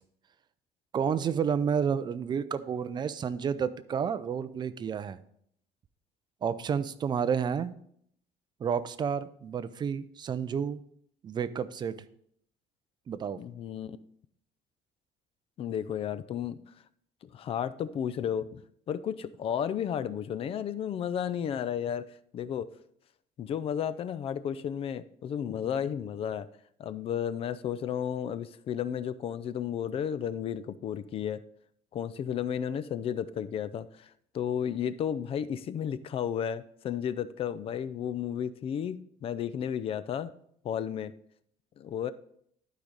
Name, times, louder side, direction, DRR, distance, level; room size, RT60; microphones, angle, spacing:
voice 1, 0.9-5.2 6.4-7.7 8.6-10.8 11.2-12.0 13.1-13.4, right 7 dB, 30° right, 13 dB, 0.5 m, -30 dB
voice 2, 13.4-14.0 15.6-16.6 17.3-18.6 18.9-22.1 22.3-22.7 23.4-26.5 26.8-31.4 31.9-34.1 34.3-40.3 40.6-41.1 41.8-42.1, left 9 dB, 45° left, 15 dB, 0.5 m, -33 dB
11.5 x 5.0 x 4.0 m, 0.67 s
cardioid pair, 130°, 14 cm